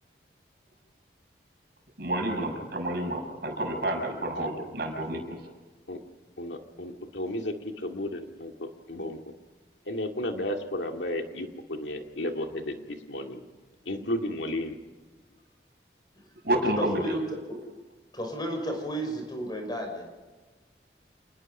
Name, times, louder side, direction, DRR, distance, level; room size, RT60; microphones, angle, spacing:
voice 1, 2.0-5.4 16.4-17.0, right 1 dB, 60° right, 2 dB, 6.3 m, -29 dB
voice 2, 6.4-7.5 7.8-9.2 9.9-12.7 13.1-13.4 13.9-14.7, left 1 dB, 90° left, 4 dB, 2.2 m, -33 dB
voice 3, 16.8-17.2 17.5-17.6 18.1-20.1, equal, 25° left, 3 dB, 5.8 m, -32 dB
28.5 x 19.5 x 5.5 m, 1.3 s
head